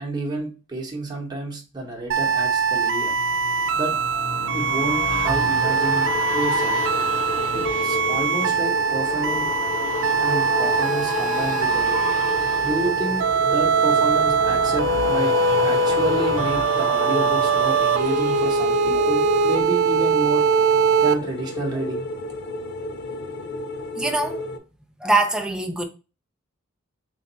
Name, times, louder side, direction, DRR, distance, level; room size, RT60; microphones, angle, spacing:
voice 1, 0.0-3.1 3.7-4.0 4.5-6.9 7.5-9.5 10.2-12.0 12.6-15.3 15.6-20.5 21.0-22.1, right 2 dB, 20° right, 1.1 m, -30 dB
sound 1, 1.9-19.7 20.1-20.2, left 2 dB, 85° left, 1.9 m, -32 dB
sound 2, 2.1-21.2, right 5 dB, 65° right, 0.4 m, -22 dB
sound 3, 5.6-24.6, left 1 dB, 55° left, 0.5 m, -31 dB
voice 2, 24.0-24.4 25.0-25.8, right 2 dB, 5° right, 0.5 m, -23 dB
3.5 x 2.6 x 3.9 m
head